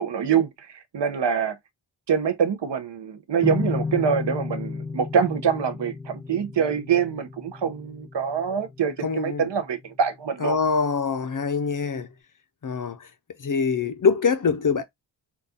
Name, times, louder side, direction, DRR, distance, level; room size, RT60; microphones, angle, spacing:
voice 1, 0.0-1.6 2.1-10.6, right 7 dB, 60° right, 0.7 m, -25 dB
sound 1, 3.4-10.6, left 4 dB, 5° left, 1.0 m, -34 dB
voice 2, 9.0-9.4 10.4-12.1 12.6-13.1 13.4-14.8, left 5 dB, 40° left, 0.5 m, -24 dB
4.1 x 2.3 x 3.4 m
wide cardioid pair, 135°, 48 cm